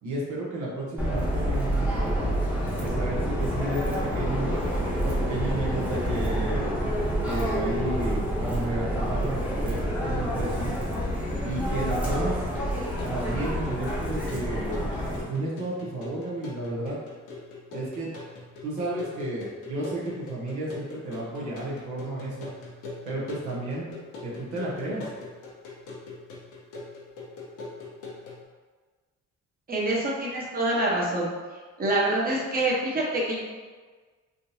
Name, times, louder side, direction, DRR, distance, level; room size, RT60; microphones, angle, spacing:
voice 1, 0.0-1.8 2.7-4.5 5.0-6.8 7.2-10.7 11.4-12.4 13.0-17.0 17.7-18.1 18.6-22.5 23.1-23.9 24.2-25.1, right 2 dB, 70° right, -5 dB, 1.0 m, -32 dB
Subway metro underground, 1.0-15.2, equal, 5° right, 0.9 m, -28 dB
sound 1, 11.7-28.4, left 3 dB, 85° left, 0.9 m, -42 dB
voice 2, 29.7-31.3 31.8-33.4, right 1 dB, 30° right, -5 dB, 1.0 m, -26 dB
3.7 x 2.6 x 2.7 m, 1.4 s
cardioid pair, 90°, 30 cm